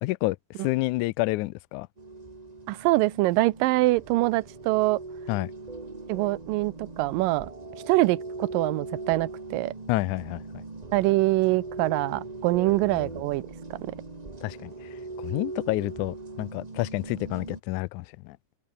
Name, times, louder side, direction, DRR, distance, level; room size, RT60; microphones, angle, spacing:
voice 1, 0.0-1.9 5.3-5.5 9.9-10.4 14.4-14.9 15.2-18.4, left 20 dB, 80° left, 1.8 m, -29 dB
sound 1, 2.0-17.6, right 3 dB, 25° right, 0.9 m, -40 dB
voice 2, 2.7-5.0 6.1-7.5 7.9-9.7 10.9-13.4 13.7-13.9, right 19 dB, 85° right, 2.3 m, -24 dB
open air
omnidirectional pair, 4.0 m